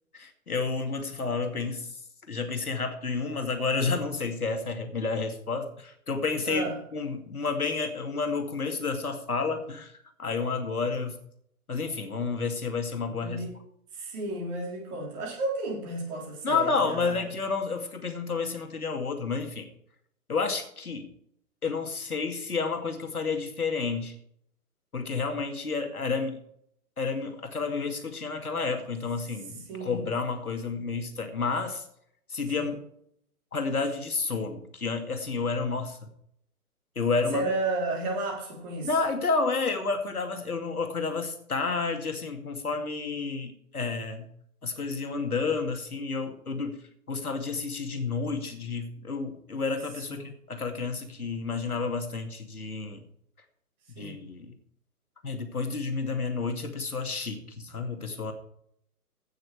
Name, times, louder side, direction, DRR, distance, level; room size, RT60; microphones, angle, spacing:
voice 1, 0.1-2.0 2.3-9.9 10.2-11.2 11.7-13.5 16.4-19.7 20.3-21.1 21.6-24.2 24.9-26.4 27.0-31.9 32.3-32.8 33.5-36.1 37.0-37.5 38.8-44.3 44.6-46.8 47.1-53.1 53.9-54.5 55.2-58.3, left 4 dB, 75° left, 4 dB, 2.5 m, -30 dB
voice 2, 6.4-6.8 13.1-13.6 13.9-17.2 29.7-30.1 32.6-32.7 37.3-38.9 50.1-50.3 54.0-54.2, right 2 dB, 30° right, 0 dB, 3.7 m, -33 dB
16.0 x 6.6 x 4.7 m, 0.69 s
figure-of-eight pair, 130°, 45 cm